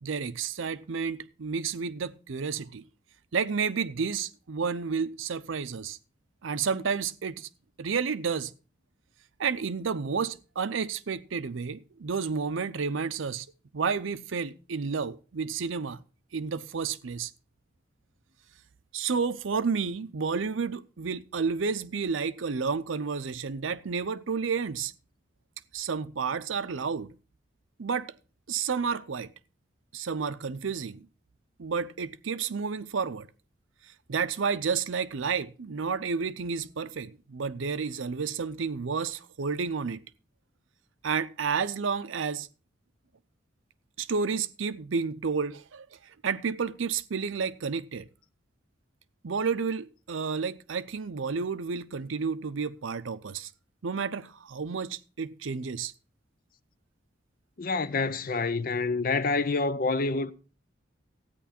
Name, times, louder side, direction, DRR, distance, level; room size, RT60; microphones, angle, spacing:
voice 1, 0.0-2.8 3.3-6.0 6.4-7.5 7.8-8.5 9.4-13.5 13.7-16.0 16.3-17.3 18.9-24.9 25.7-27.1 27.8-28.1 28.5-29.3 29.9-31.1 31.6-33.3 34.1-40.0 41.0-42.5 44.0-45.9 46.2-48.1 49.2-53.5 53.8-55.9, right 5 dB, 80° right, 0.6 m, -31 dB
voice 2, 57.6-60.3, left 3 dB, 45° left, 0.5 m, -27 dB
13.5 x 9.2 x 4.2 m
head